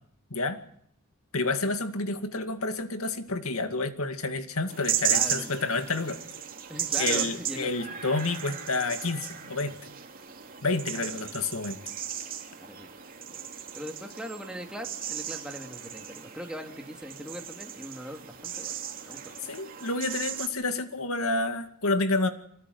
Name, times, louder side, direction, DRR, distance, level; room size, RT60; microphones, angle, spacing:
voice 1, 1.3-6.2 7.0-9.8 10.6-11.8 19.4-22.3, left 3 dB, 90° left, 8 dB, 2.2 m, -29 dB
sound 1, 4.7-20.5, right 9 dB, 40° right, 3.1 m, -35 dB
voice 2, 5.1-5.6 6.7-8.1 10.9-11.2 12.6-12.9 13.7-18.8 19.0-19.3, equal, 5° right, 3 dB, 2.7 m, -40 dB
25.5 x 19.0 x 9.5 m, 0.69 s
head